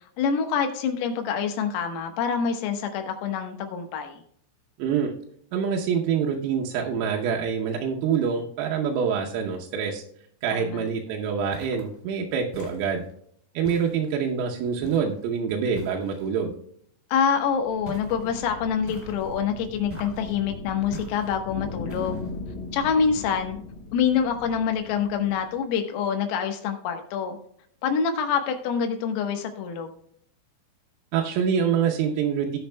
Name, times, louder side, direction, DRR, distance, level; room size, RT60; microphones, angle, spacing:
voice 1, 0.2-4.2 10.5-10.9 17.1-22.2 22.7-23.6 23.9-27.4 27.8-29.9, left 7 dB, 85° left, 5 dB, 3.9 m, -26 dB
voice 2, 4.8-5.1 5.5-10.0 10.4-13.0 13.6-16.5 31.1-32.6, right 7 dB, 85° right, -1 dB, 3.5 m, -26 dB
sound 1, 11.5-12.0 12.5-13.1 13.6-14.3 14.8-15.2 15.7-16.3 17.8-18.3 18.9-19.4 19.9-20.4 20.9-21.4 21.9-22.4, equal, 5° left, 2.4 m, -42 dB
sound 2, 17.2-25.7, left 3 dB, 70° left, 4.5 m, -39 dB
19.0 x 6.4 x 2.2 m, 0.67 s
omnidirectional pair, 5.9 m